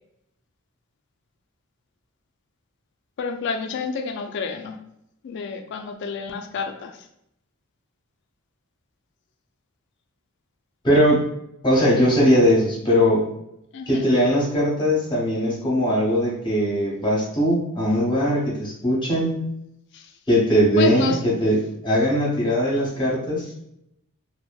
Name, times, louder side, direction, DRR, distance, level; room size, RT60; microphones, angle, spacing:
voice 1, 3.2-4.8 5.2-6.9 13.7-14.1 19.9-20.1 20.8-21.2, left 5 dB, 55° left, 6 dB, 0.3 m, -29 dB
voice 2, 10.8-11.2 11.6-13.2 13.9-19.3 20.3-21.6 21.8-23.5, equal, 20° left, -5 dB, 0.8 m, -20 dB
2.6 x 2.2 x 2.3 m, 0.79 s
head